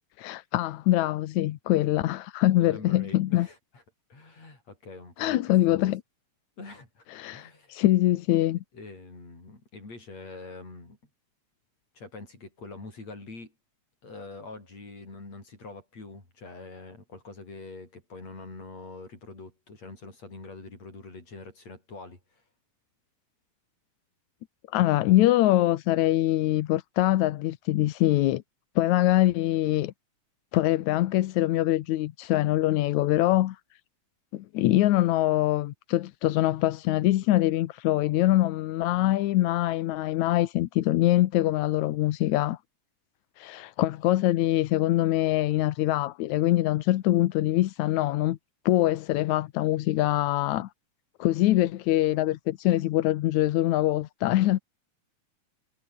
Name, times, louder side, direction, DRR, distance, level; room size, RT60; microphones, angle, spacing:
voice 1, 0.2-3.5 5.2-6.0 7.1-8.6 24.7-28.4 28.8-29.9 30.5-33.6 34.3-42.6 43.4-48.4 48.7-50.7 51.2-54.6, left 15 dB, 80° left, 2.2 m, -24 dB
voice 2, 2.6-3.8 4.1-5.4 5.7-5.9 6.6-7.0 7.3-7.8 8.7-11.0 11.9-13.5 14.0-22.4, left 3 dB, 60° left, 9.1 m, -44 dB
omnidirectional pair, 3.4 m